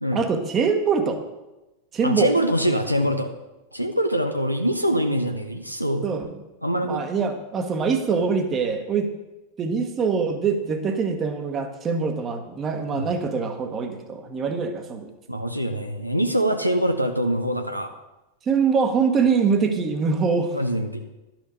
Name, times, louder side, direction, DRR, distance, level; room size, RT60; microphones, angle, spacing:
voice 1, 0.1-1.2 1.9-2.3 6.0-6.4 6.8-9.1 9.6-15.1 18.5-20.6, right 5 dB, 25° right, 6 dB, 1.3 m, -24 dB
voice 2, 2.0-3.3 3.7-6.0 6.6-7.0 12.9-13.1 15.3-18.0 20.5-21.0, equal, 90° right, 5 dB, 0.8 m, -24 dB
11.5 x 6.1 x 6.8 m, 1.0 s
figure-of-eight pair, 90°, 0 cm